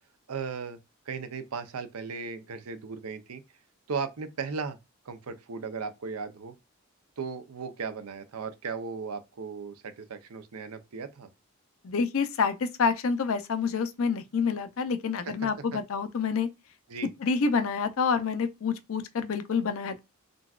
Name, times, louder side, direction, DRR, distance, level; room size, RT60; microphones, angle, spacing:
voice 1, 0.3-0.8 1.1-3.4 3.9-4.8 5.1-6.5 7.2-11.3 15.2-15.8 16.9-17.1, right 5 dB, 85° right, 0.6 m, -36 dB
voice 2, 11.8-16.5 17.2-20.0, left 5 dB, 70° left, 0.5 m, -28 dB
3.8 x 2.3 x 2.3 m
head